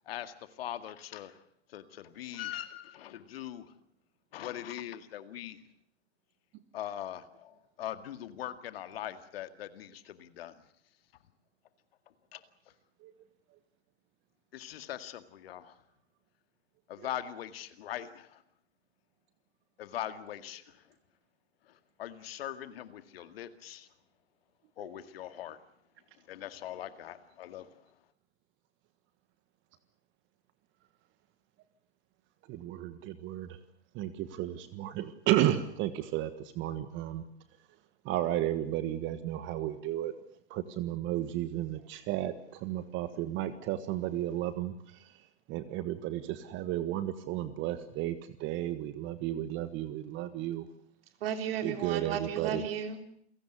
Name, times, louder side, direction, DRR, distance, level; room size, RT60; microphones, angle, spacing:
voice 1, 0.1-1.4 1.7-3.7 4.3-5.6 6.7-10.6 12.3-12.4 14.5-15.7 16.9-18.4 19.8-20.8 21.7-23.9 24.8-25.6 26.3-27.8, left 11 dB, 60° left, 10 dB, 2.1 m, -41 dB
voice 2, 32.5-33.6 33.9-37.2 38.0-40.1 40.5-50.7 51.6-52.6, right 13 dB, 35° right, 12 dB, 1.5 m, -33 dB
voice 3, 51.2-53.0, right 8 dB, 60° right, 6 dB, 3.7 m, -34 dB
29.0 x 17.0 x 8.1 m, 0.67 s
hypercardioid pair, 110°, 33 cm